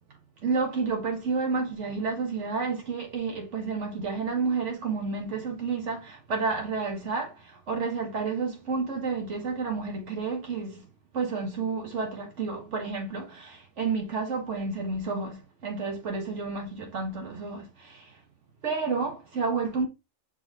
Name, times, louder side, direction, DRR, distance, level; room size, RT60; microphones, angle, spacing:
voice 1, 0.4-10.9 11.1-18.1 18.6-19.9, right 4 dB, 60° right, 1.6 m, -30 dB
6.1 x 3.6 x 2.4 m
omnidirectional pair, 1.4 m